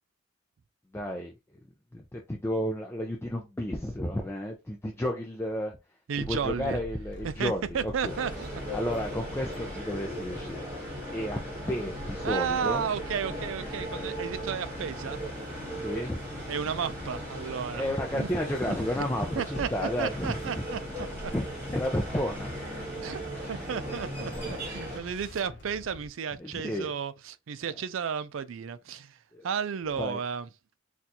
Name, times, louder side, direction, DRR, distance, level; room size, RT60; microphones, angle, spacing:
voice 1, 0.9-1.3 1.9-5.8 6.3-8.1 8.7-10.7 11.1-11.4 11.7-12.9 15.8-16.2 17.7-20.6 21.3-22.5 23.3-23.7 24.3-25.1 26.4-26.9 29.3-29.5 30.0-30.2, equal, 10° left, 0.4 m, -32 dB
voice 2, 6.1-6.8 7.2-8.5 12.2-15.2 16.5-18.3 18.7-19.1 19.4-19.7 20.0-21.3 23.0-23.2 23.5-29.2 29.4-30.5, right 7 dB, 80° right, 0.4 m, -33 dB
sound 1, 6.2-26.1, equal, 65° left, 0.7 m, -45 dB
sound 2, 8.0-25.0, equal, 10° right, 2.1 m, -38 dB
sound 3, 23.2-25.9, right 1 dB, 45° right, 1.5 m, -55 dB
4.1 x 2.4 x 2.7 m
head